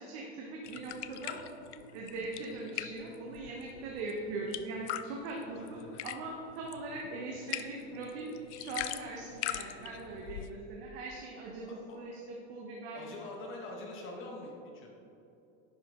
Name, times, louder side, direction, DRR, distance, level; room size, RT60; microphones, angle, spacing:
voice 1, 0.0-1.4 1.9-13.2, right 2 dB, 60° right, -2 dB, 1.4 m, -41 dB
sound 1, 0.6-10.5, left 13 dB, 75° left, 0.6 m, -43 dB
voice 2, 5.5-6.0 11.9-12.0 12.9-14.9, left 2 dB, 35° left, 0 dB, 1.8 m, -44 dB
10.5 x 6.0 x 3.8 m, 2.8 s
supercardioid pair, 130°, 34 cm